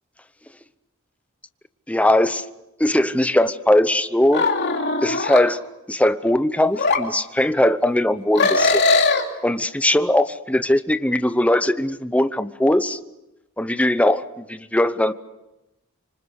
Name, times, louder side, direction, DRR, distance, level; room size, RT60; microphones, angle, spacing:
voice 1, 1.9-2.4 2.8-4.5 5.0-5.6 5.9-8.8 9.4-13.0 13.6-15.1, left 1 dB, 5° left, 11 dB, 0.8 m, -20 dB
sound 1, 4.3-5.4 6.8-7.0 8.4-9.2, left 3 dB, 55° left, 2.9 m, -19 dB
27.0 x 25.5 x 6.5 m, 0.95 s
head